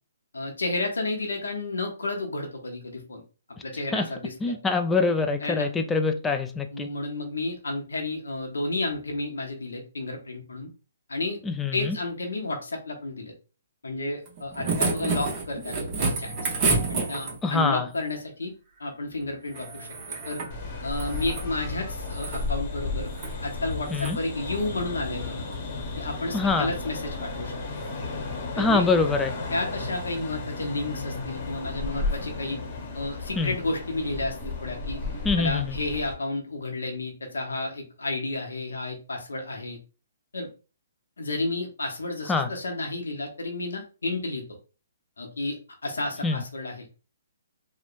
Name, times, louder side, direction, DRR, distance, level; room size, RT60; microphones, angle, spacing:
voice 1, 0.3-3.2 3.6-4.5 5.4-5.7 6.7-10.7 11.1-11.4 11.7-13.3 13.8-16.5 16.9-18.5 18.8-19.9 20.2-20.4 20.8-23.1 23.4-25.3 26.0-27.6 28.5-28.9 29.5-32.6 32.9-35.0 35.4-39.8 40.3-40.5 41.2-44.4 45.2-46.9, left 2 dB, 85° left, 2 dB, 0.7 m, -31 dB
voice 2, 4.4-6.9 11.4-12.0 17.4-17.9 23.9-24.2 26.3-26.7 28.6-29.3 33.4-33.6 35.2-35.8 42.3-42.5 46.2-46.4, left 4 dB, 10° left, 6 dB, 0.3 m, -24 dB
sound 1, 14.3-17.6 19.5-20.5 20.9-21.5 22.0-22.4 23.1-23.3 23.9-24.2 25.5-25.6, right 3 dB, 30° right, 0.8 m, -29 dB
sound 2, 20.5-36.1, left 3 dB, 40° left, 0.9 m, -34 dB
2.9 x 2.0 x 2.4 m, 0.34 s
hypercardioid pair, 140°, 0 cm